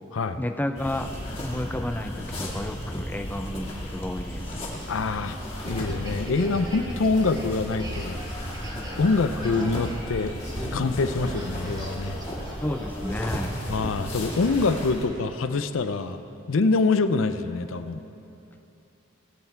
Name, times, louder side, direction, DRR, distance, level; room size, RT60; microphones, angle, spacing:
voice 1, 0.4-1.1 1.4-4.4 11.1-11.4 12.6-13.6, left 1 dB, 10° left, 7 dB, 0.4 m, -31 dB
sound 1, 0.7-15.1, equal, 30° left, 2.0 m, -34 dB
sound 2, 4.7-14.6, equal, 20° right, 1.9 m, -41 dB
voice 2, 4.9-5.4 5.6-8.2 9.0-10.3 10.7-12.2 13.7-16.2 16.5-18.0, left 3 dB, 75° left, 11 dB, 0.5 m, -25 dB
18.5 x 8.0 x 4.6 m, 2.9 s
head